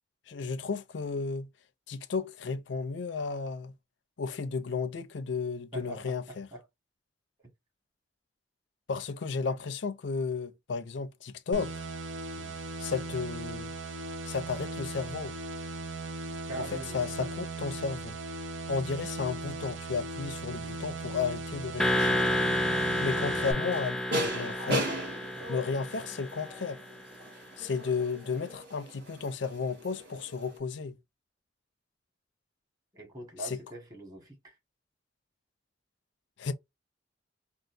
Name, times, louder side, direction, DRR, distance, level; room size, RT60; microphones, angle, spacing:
voice 1, 0.3-1.5 1.9-3.7 4.2-6.5 8.9-11.8 12.8-13.7 14.2-15.3 16.6-18.2 18.7-22.2 23.0-24.9 25.5-26.8 27.6-31.0 33.4-33.6 36.4-36.5, left 5 dB, 70° left, 0.5 m, -33 dB
voice 2, 5.7-6.6 12.4-12.6 16.5-17.3 25.3-25.5 32.9-34.6, right 2 dB, 20° right, 1.4 m, -42 dB
sound 1, 11.5-23.5, right 2 dB, 80° right, 0.6 m, -38 dB
sound 2, 21.8-26.7, left 1 dB, 5° left, 0.5 m, -30 dB
sound 3, 22.8-30.6, equal, 60° right, 1.8 m, -38 dB
3.8 x 2.4 x 2.5 m
head